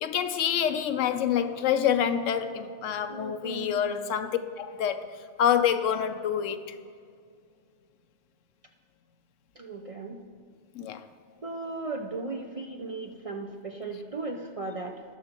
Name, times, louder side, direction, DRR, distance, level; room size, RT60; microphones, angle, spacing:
voice 1, 0.0-6.8 10.7-11.0, left 9 dB, 90° left, 1.0 m, -27 dB
voice 2, 3.1-4.2 9.6-10.2 11.4-15.0, right 3 dB, 40° right, 0.5 m, -37 dB
19.0 x 6.5 x 2.9 m
omnidirectional pair, 1.2 m